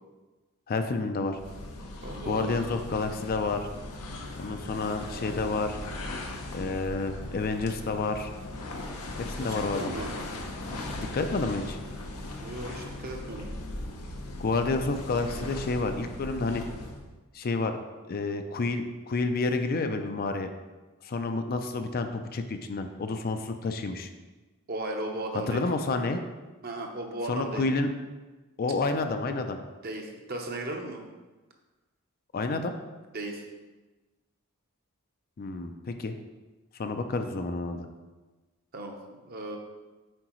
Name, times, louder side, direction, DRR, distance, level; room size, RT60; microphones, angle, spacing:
voice 1, 0.7-1.4 2.3-3.7 4.4-5.8 6.5-8.3 9.2-9.8 11.0-11.8 14.4-16.6 17.3-17.8 18.1-20.5 21.0-24.1 25.5-26.2 27.3-27.9 28.6-29.6 32.3-32.7 35.4-36.1 36.8-37.9, left 3 dB, 45° left, 7 dB, 0.4 m, -29 dB
sound 1, 1.3-17.1, left 2 dB, 90° left, 0.8 m, -38 dB
voice 2, 2.0-2.6 9.4-10.1 12.4-13.5 24.7-25.6 26.6-27.7 29.8-31.0 33.1-33.4 38.7-39.0 39.2-39.6, right 1 dB, 45° right, 2 dB, 0.8 m, -36 dB
7.7 x 4.7 x 3.1 m, 1.2 s
head